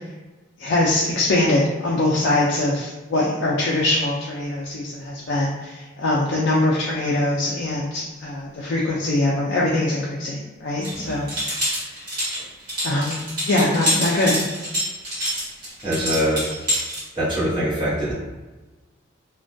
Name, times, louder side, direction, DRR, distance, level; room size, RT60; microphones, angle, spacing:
voice 1, 0.6-11.3 12.8-14.4, left 2 dB, 65° left, -4 dB, 0.4 m, -22 dB
sound 1, 10.8-17.0, equal, 50° right, 1.3 m, -26 dB
voice 2, 10.9-11.2 15.8-16.5 17.1-18.1, equal, 25° right, -10 dB, 0.9 m, -23 dB
2.2 x 2.2 x 2.5 m, 1.2 s
head